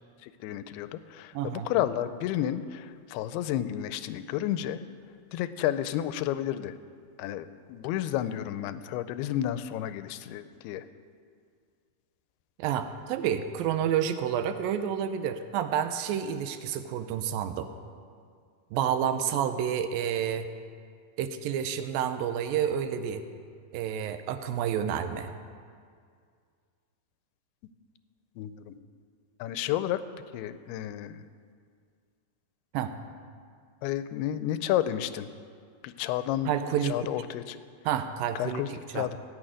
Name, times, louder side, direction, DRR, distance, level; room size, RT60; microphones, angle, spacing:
voice 1, 0.2-4.8 5.3-6.8 7.2-10.9 28.4-28.8 29.4-30.0 30.3-31.2 33.8-35.3 35.8-36.5 36.9-37.6 38.4-39.2, left 12 dB, 85° left, 13 dB, 2.6 m, -31 dB
voice 2, 1.3-1.7 12.6-17.7 18.7-20.5 21.2-23.2 23.7-25.3 32.7-32.9 36.5-37.1 37.9-38.6 38.9-39.1, right 9 dB, 80° right, 9 dB, 2.2 m, -29 dB
16.0 x 6.4 x 8.9 m, 2.1 s
omnidirectional pair, 4.5 m